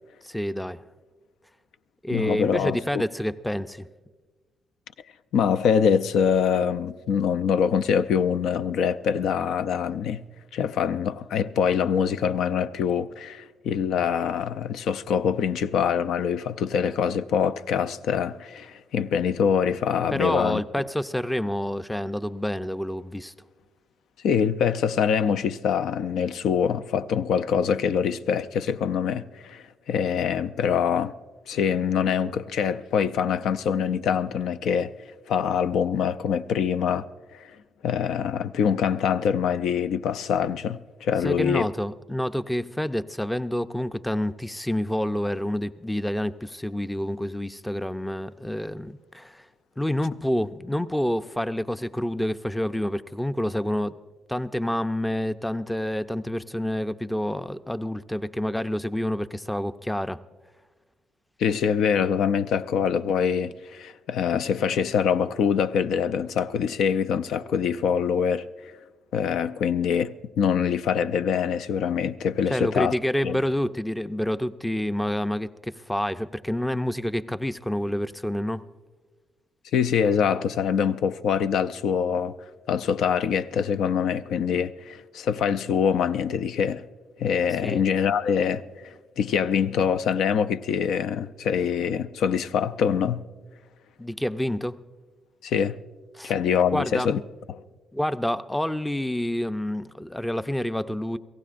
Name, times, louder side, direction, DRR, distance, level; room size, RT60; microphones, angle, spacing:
voice 1, 0.3-0.8 2.0-3.9 20.1-23.3 41.2-49.4 49.8-53.9 54.3-60.2 72.5-78.6 87.6-87.8 94.0-94.8 96.1-96.3 96.7-97.1 97.9-101.2, left 1 dB, 5° left, 0.4 m, -28 dB
voice 2, 2.1-3.0 5.3-10.2 10.5-20.6 24.2-31.1 31.5-34.9 35.3-37.0 37.3-37.6 37.8-41.7 61.4-68.7 69.1-72.9 73.2-73.4 79.7-82.3 82.7-86.8 87.2-88.6 89.2-93.2 95.4-95.8 96.2-97.2 97.5-97.6, left 7 dB, 75° left, 0.4 m, -24 dB
29.0 x 17.0 x 2.5 m
cardioid pair, 90°, 0 cm